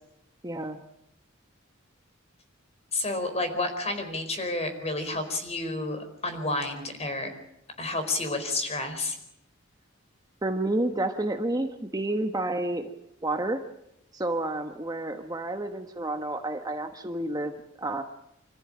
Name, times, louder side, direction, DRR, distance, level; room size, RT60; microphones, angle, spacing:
voice 1, 0.4-0.8 10.4-12.9 13.2-13.6 14.1-18.0, right 2 dB, 20° right, 6 dB, 1.2 m, -30 dB
voice 2, 2.9-7.3 7.8-9.2, left 2 dB, 35° left, 7 dB, 4.6 m, -30 dB
26.0 x 14.5 x 8.8 m, 0.82 s
head